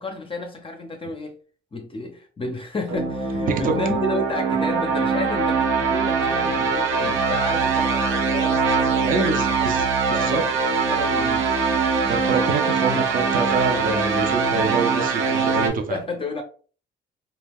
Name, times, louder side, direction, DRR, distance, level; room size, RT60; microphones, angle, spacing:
voice 1, 0.0-1.4 1.7-11.5 12.9-13.1 15.9-16.4, left 2 dB, 25° left, 0.5 m, -32 dB
sound 1, 2.9-15.7, right 5 dB, 85° right, 0.6 m, -22 dB
voice 2, 9.0-10.4 12.0-16.0, right 4 dB, 45° right, 0.5 m, -26 dB
2.2 x 2.1 x 3.4 m
cardioid pair, 90°, 20 cm